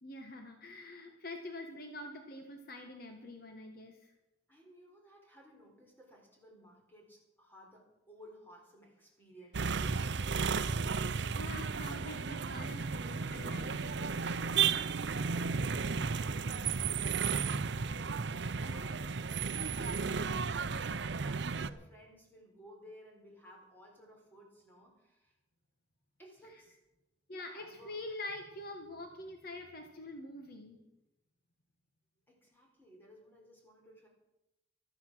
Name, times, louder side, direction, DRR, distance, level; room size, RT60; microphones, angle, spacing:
voice 1, 0.0-4.1 11.3-14.2 26.5-26.6 27.3-30.8, left 2 dB, 50° left, 5 dB, 1.4 m, -45 dB
voice 2, 4.5-10.7 15.1-25.3 26.2-26.8 27.3-28.0 32.3-34.1, equal, 10° left, -1 dB, 4.1 m, -57 dB
sound 1, 9.5-21.7, right 5 dB, 60° right, 0.6 m, -34 dB
13.5 x 13.0 x 6.2 m, 0.92 s
head